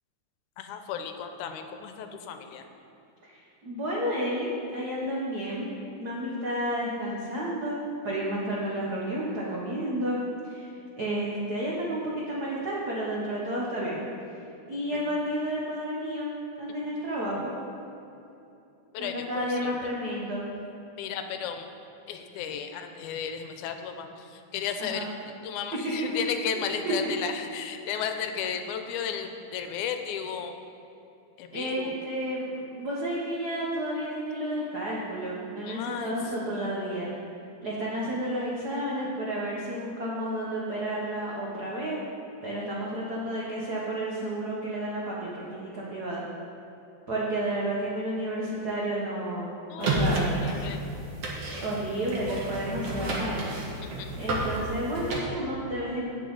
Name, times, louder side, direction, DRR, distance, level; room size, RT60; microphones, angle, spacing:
voice 1, 0.6-2.6 8.1-8.2 14.9-15.0 18.9-19.8 21.0-21.7 22.1-25.1 25.4-30.6 31.4-32.0 35.7-36.1 36.4-36.7 49.7-50.8 53.8-54.1, left 7 dB, 90° left, 7 dB, 2.1 m, -34 dB
voice 2, 3.2-5.7 6.0-10.2 10.5-14.0 14.7-16.3 16.6-17.5 19.0-20.4 24.8-25.0 26.0-26.2 26.8-27.1 31.5-37.1 37.6-42.0 42.4-46.2 47.1-49.5 49.8-50.3 51.6-53.4 54.2-56.1, right 1 dB, 85° right, -5 dB, 0.8 m, -31 dB
sound 1, 49.8-55.2, right 1 dB, 60° right, 2.0 m, -31 dB
16.5 x 5.7 x 3.9 m, 2.8 s
omnidirectional pair, 3.5 m